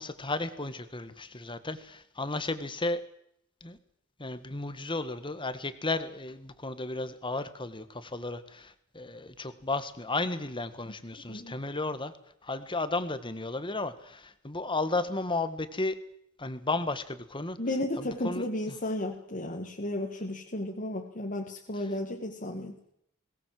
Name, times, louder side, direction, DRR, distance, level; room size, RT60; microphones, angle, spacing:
voice 1, 0.0-3.0 3.6-3.8 4.2-12.1 12.4-16.0 16.4-17.6 18.0-18.8 21.7-21.9, left 2 dB, 25° left, 11 dB, 1.7 m, -34 dB
voice 2, 17.6-22.8, left 1 dB, 40° left, 0 dB, 2.1 m, -33 dB
22.5 x 18.0 x 7.8 m, 0.73 s
head